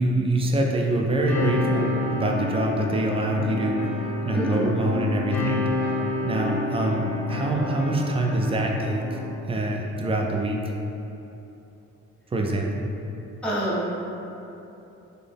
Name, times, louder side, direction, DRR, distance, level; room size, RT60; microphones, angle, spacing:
voice 1, 0.0-3.9 4.2-5.7 6.2-7.0 7.3-9.2 9.5-10.6 12.3-12.8, right 1 dB, 20° right, 1 dB, 0.4 m, -25 dB
sound 1, 1.3-9.3, left 2 dB, 85° left, 1.0 m, -29 dB
voice 2, 4.3-4.7 13.4-13.9, equal, 5° left, -9 dB, 0.7 m, -26 dB
4.0 x 2.0 x 3.4 m, 2.9 s
cardioid pair, 90°, 30 cm